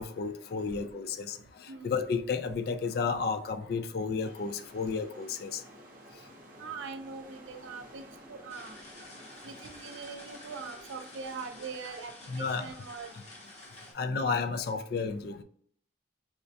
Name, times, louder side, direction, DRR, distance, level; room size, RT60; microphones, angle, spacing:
voice 1, 0.0-1.4 1.8-5.6 12.3-12.7 13.9-15.4, left 5 dB, 50° left, 9 dB, 0.3 m, -32 dB
sound 1, 4.2-11.8, right 1 dB, 45° right, 0.7 m, -53 dB
voice 2, 6.6-8.0 8.3-8.8 9.4-13.1, right 5 dB, 85° right, 7 dB, 0.5 m, -42 dB
sound 2, 8.5-13.9, left 2 dB, 35° left, 0.8 m, -50 dB
4.8 x 2.1 x 2.6 m, 0.62 s
head